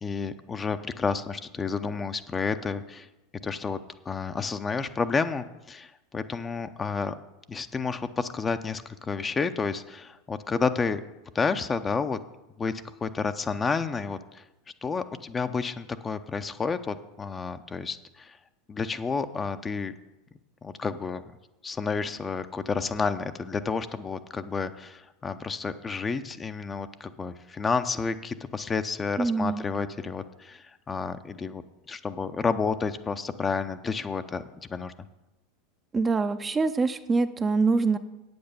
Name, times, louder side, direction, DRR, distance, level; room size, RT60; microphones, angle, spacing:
voice 1, 0.0-3.1 3.4-3.8 4.1-7.1 7.5-11.0 11.3-12.2 12.6-12.7 13.0-14.4 14.8-18.4 18.7-19.9 20.6-21.2 21.6-34.4 34.7-34.9, left 5 dB, 20° left, 10 dB, 0.7 m, -30 dB
voice 2, 29.2-29.6 35.9-38.0, right 4 dB, 20° right, 9 dB, 0.6 m, -24 dB
8.5 x 7.9 x 6.9 m, 1.0 s
hypercardioid pair, 85°, 0 cm